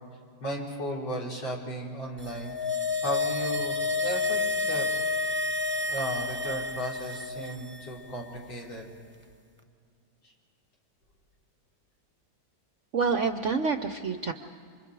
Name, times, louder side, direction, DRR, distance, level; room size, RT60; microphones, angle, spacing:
voice 1, 0.4-2.5 3.0-4.9 5.4-5.5 5.9-8.9 10.2-10.3, equal, 80° left, -3 dB, 4.5 m, -35 dB
sound 1, 2.3-7.8 8.0-8.1, left 3 dB, 15° right, 0.3 m, -29 dB
voice 2, 12.9-14.3, right 5 dB, 60° right, 8 dB, 0.8 m, -27 dB
28.0 x 25.0 x 4.8 m, 2.3 s
omnidirectional pair, 2.1 m